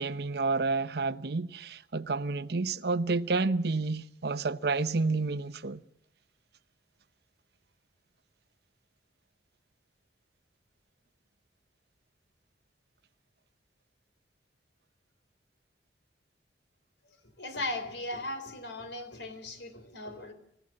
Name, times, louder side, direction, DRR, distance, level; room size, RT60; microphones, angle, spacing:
voice 1, 0.0-5.8, right 3 dB, 65° right, 0.8 m, -30 dB
voice 2, 17.2-20.3, left 2 dB, 75° left, 3.9 m, -37 dB
29.0 x 15.5 x 7.7 m
head